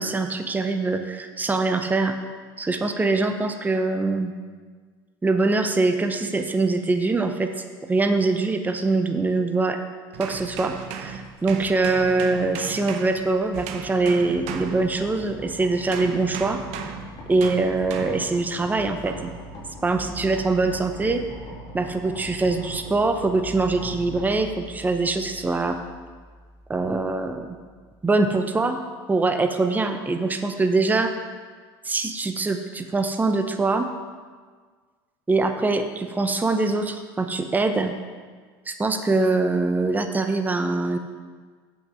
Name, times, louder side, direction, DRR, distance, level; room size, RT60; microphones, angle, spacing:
voice 1, 0.0-2.2 2.6-4.3 5.2-7.5 7.8-9.8 10.2-16.6 17.3-19.3 19.8-21.2 21.7-25.8 26.7-27.6 28.0-28.8 29.1-31.1 31.8-33.9 35.3-37.9 38.7-41.0, right 3 dB, 15° right, 7 dB, 0.7 m, -23 dB
sound 1, 10.1-15.4 15.9-18.4 19.1-19.4, right 7 dB, 65° right, 0.8 m, -36 dB
sound 2, 14.3-28.2, equal, 55° left, 2.5 m, -41 dB
7.8 x 6.1 x 6.2 m, 1.5 s
hypercardioid pair, 90°, 12 cm